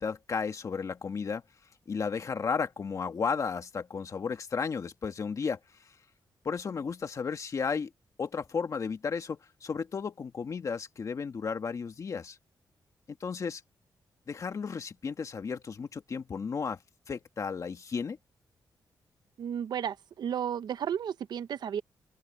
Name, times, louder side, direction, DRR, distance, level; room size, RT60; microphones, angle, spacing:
voice 1, 0.0-1.4 1.9-5.6 6.4-7.9 8.2-12.4 13.2-13.6 14.3-16.8 17.1-18.2, left 5 dB, 45° left, 1.8 m, -33 dB
voice 2, 19.4-21.8, right 9 dB, 75° right, 0.8 m, -33 dB
open air
wide cardioid pair, 120°, 7 cm